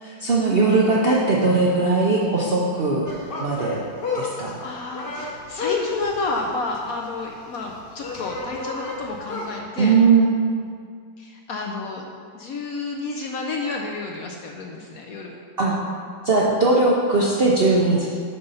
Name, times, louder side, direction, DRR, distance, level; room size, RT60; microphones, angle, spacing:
voice 1, 0.0-3.0 3.4-3.8 4.1-4.6 9.8-10.5 15.6-15.8 16.2-18.1, right 3 dB, 55° right, -4 dB, 0.6 m, -19 dB
sound 1, 3.1-9.6, left 3 dB, 40° left, 0.9 m, -31 dB
voice 2, 4.6-10.0 11.2-12.1 12.3-15.4, left 3 dB, 65° left, 1 dB, 0.9 m, -30 dB
6.7 x 5.4 x 5.5 m, 2.1 s
omnidirectional pair, 2.0 m